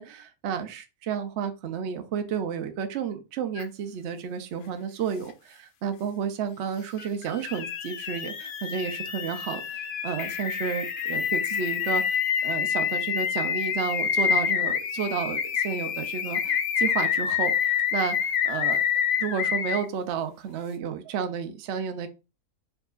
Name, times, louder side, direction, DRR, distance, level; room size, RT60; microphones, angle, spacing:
voice 1, 0.0-18.8 19.2-22.1, right 7 dB, 60° right, 0.8 m, -32 dB
sound 1, 3.6-3.7 7.0-19.9, left 8 dB, 75° left, 0.5 m, -27 dB
4.6 x 3.9 x 2.4 m
omnidirectional pair, 1.5 m